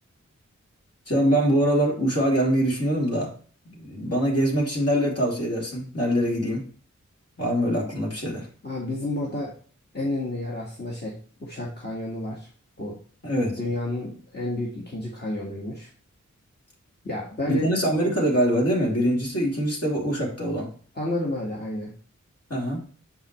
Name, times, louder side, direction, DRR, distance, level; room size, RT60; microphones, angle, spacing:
voice 1, 1.1-3.3 3.7-6.7 7.4-8.5 13.2-13.6 17.5-20.7 22.5-22.8, equal, 55° left, -2 dB, 2.9 m, -24 dB
voice 2, 8.6-9.5 9.9-12.5 12.8-13.0 13.6-15.9 17.0-17.7 20.9-21.9, left 1 dB, 35° left, -4 dB, 1.6 m, -30 dB
7.1 x 5.5 x 3.1 m, 0.43 s
wide cardioid pair, 65°, 30 cm